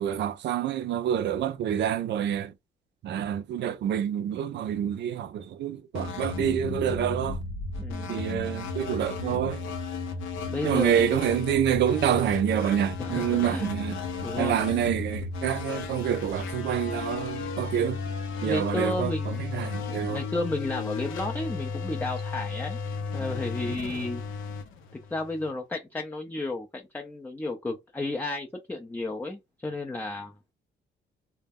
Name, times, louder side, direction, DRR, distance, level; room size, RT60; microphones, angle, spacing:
voice 1, 0.0-2.5 3.0-7.4 8.1-9.6 10.6-14.0 14.4-18.0 18.4-20.2, right 10 dB, 60° right, 0.4 m, -27 dB
sound 1, 5.9-25.5, left 4 dB, 85° left, 0.6 m, -34 dB
voice 2, 7.8-8.2 10.5-11.2 13.0-13.7 14.2-14.6 18.4-22.8 23.1-24.2 24.9-30.3, left 2 dB, 10° left, 0.3 m, -33 dB
2.2 x 2.0 x 3.4 m
cardioid pair, 90°, 20 cm